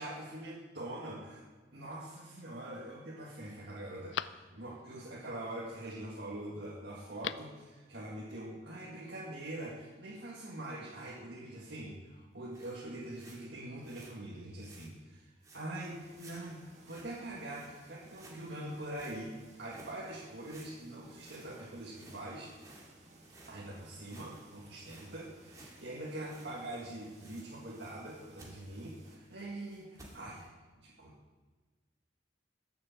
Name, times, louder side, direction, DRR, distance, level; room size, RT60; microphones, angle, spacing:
voice 1, 0.0-1.5 1.7-22.5 23.5-30.4 30.8-31.1, right 1 dB, 65° right, -7 dB, 1.9 m, -44 dB
Telephone, 1.8-2.4 3.0-3.1 3.4-5.0 7.0-7.6 7.9-8.0, left 9 dB, 80° left, 0.4 m, -43 dB
sound 1, 12.4-14.1 14.6-14.9 15.4-15.7 16.1-17.2 17.5-17.7 18.1-19.2 19.7-20.0 20.4-23.5 23.9-26.7 26.9-28.1 28.4-28.5 29.0-30.5, right 2 dB, 20° right, 2.2 m, -57 dB
sound 2, 15.8-29.2, right 2 dB, 40° right, 1.7 m, -60 dB
11.5 x 6.7 x 7.3 m, 1.3 s
head